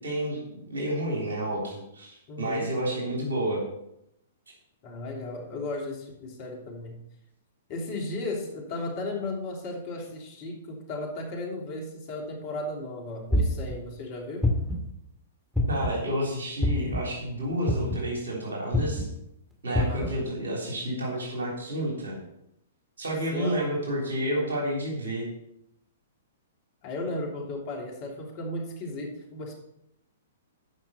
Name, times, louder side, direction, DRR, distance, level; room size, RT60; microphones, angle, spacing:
voice 1, 0.0-3.6 15.7-19.1 19.6-22.2 23.0-25.3, equal, 70° right, -2 dB, 3.4 m, -30 dB
voice 2, 2.3-2.7 4.8-7.0 7.7-14.5 19.7-20.1 23.3-23.6 26.8-29.5, left 2 dB, 40° left, 0 dB, 3.0 m, -35 dB
sound 1, 13.3-13.7 14.4-14.9 15.5-16.0 16.6-17.0 17.7-18.1 18.7-19.0 19.7-20.1, left 1 dB, ahead, 2.3 m, -25 dB
13.5 x 5.9 x 4.4 m, 0.81 s
figure-of-eight pair, 115°, 0 cm